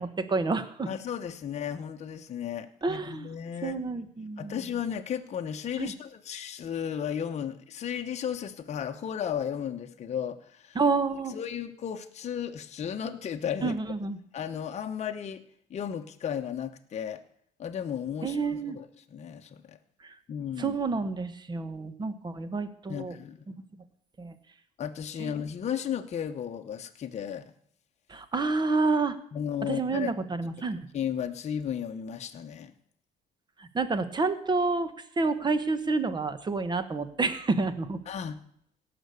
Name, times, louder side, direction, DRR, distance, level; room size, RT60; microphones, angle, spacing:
voice 1, 0.0-0.9 2.8-3.3 3.6-4.6 5.8-5.9 10.7-11.4 13.6-14.2 18.2-18.8 20.0-20.1 20.6-23.2 23.5-23.6 24.2-24.3 25.2-25.3 28.1-29.2 29.6-30.8 33.6-38.0, right 3 dB, 25° right, 12 dB, 1.2 m, -29 dB
voice 2, 0.9-3.8 4.4-10.8 11.3-13.8 14.3-15.4 15.7-17.2 17.6-18.4 18.7-19.8 20.3-20.8 22.9-23.4 24.8-27.5 29.3-30.1 30.9-32.7 38.1-38.4, left 8 dB, 40° left, 6 dB, 0.9 m, -34 dB
17.0 x 6.1 x 6.8 m, 0.66 s
cardioid pair, 110°, 17 cm